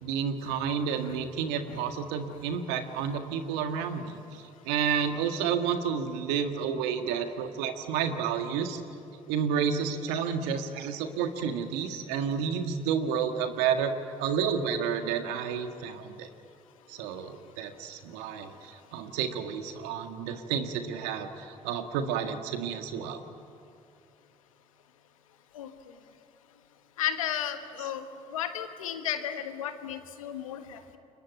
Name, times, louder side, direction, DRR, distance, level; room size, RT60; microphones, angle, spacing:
voice 1, 0.0-4.2 4.7-8.8 9.3-16.3 16.9-23.2 27.8-27.9, right 7 dB, 80° right, 7 dB, 1.8 m, -30 dB
voice 2, 27.0-28.0 28.3-31.0, left 10 dB, 90° left, 9 dB, 1.4 m, -33 dB
29.0 x 23.0 x 9.0 m, 2.6 s
hypercardioid pair, 45°, 17 cm